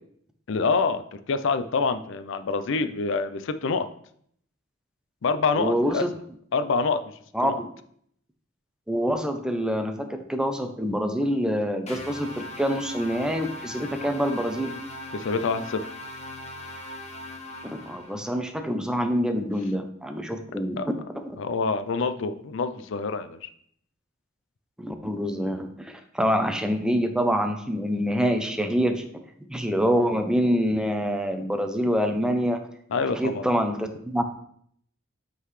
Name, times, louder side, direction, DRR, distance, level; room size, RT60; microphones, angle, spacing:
voice 1, 0.5-3.9 5.2-6.1 6.5-7.1 7.4-7.5 15.1-15.9 20.8-20.9 21.4-23.5 32.9-33.5, left 4 dB, 65° left, 11 dB, 0.4 m, -26 dB
voice 2, 5.6-6.1 7.3-7.7 8.9-14.7 17.6-21.2 24.8-29.1 29.5-32.6 33.1-34.2, equal, 5° right, 6 dB, 0.5 m, -26 dB
sound 1, 11.9-18.3, left 1 dB, 35° left, 0.9 m, -39 dB
8.2 x 3.9 x 3.2 m, 0.65 s
head